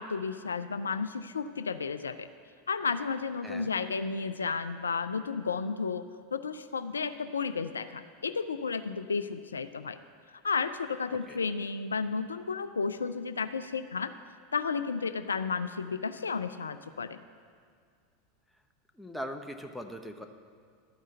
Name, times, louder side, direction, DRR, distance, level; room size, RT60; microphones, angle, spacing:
voice 1, 0.0-2.3 2.7-6.0 6.3-10.0 10.3-14.1 14.5-17.2, left 5 dB, 80° left, 11 dB, 0.3 m, -32 dB
voice 2, 19.0-20.3, equal, ahead, 4 dB, 0.9 m, -40 dB
12.0 x 5.5 x 7.8 m, 2.2 s
figure-of-eight pair, 85°, 0 cm